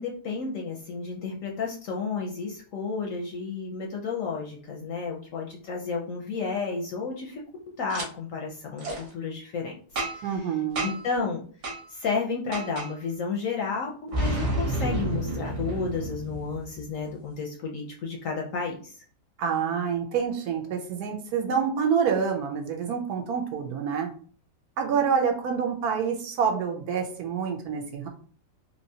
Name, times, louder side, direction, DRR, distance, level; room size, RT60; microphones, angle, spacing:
voice 1, 0.0-7.4 7.8-9.8 10.1-10.5 10.8-11.4 11.9-19.0, left 4 dB, 65° left, 0 dB, 0.8 m, -32 dB
Boom, 7.9-8.1 8.8-9.0 10.0-10.4 10.8-11.1 11.6-11.8 12.5-12.9 14.1-16.8, right 1 dB, 50° right, 1.2 m, -30 dB
voice 2, 10.2-10.9 19.4-24.1 24.8-28.1, right 6 dB, 70° right, 3 dB, 1.1 m, -27 dB
3.4 x 2.8 x 2.7 m, 0.44 s
omnidirectional pair, 1.8 m